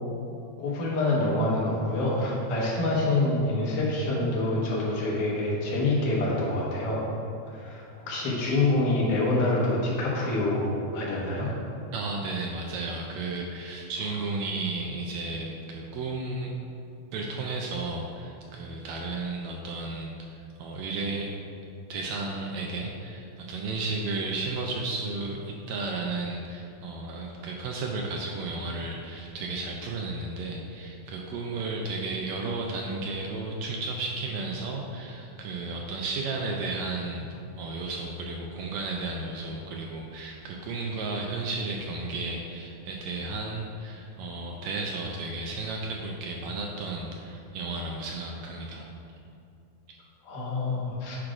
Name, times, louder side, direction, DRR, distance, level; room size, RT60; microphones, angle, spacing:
voice 1, 0.6-7.1 7.5-11.5 50.2-51.2, left 2 dB, 85° left, -5 dB, 2.8 m, -26 dB
voice 2, 11.9-16.5 17.1-21.3 21.9-37.3 37.6-48.9, right 3 dB, 80° right, 0 dB, 1.7 m, -33 dB
10.5 x 4.9 x 2.4 m, 2.5 s
omnidirectional pair, 3.6 m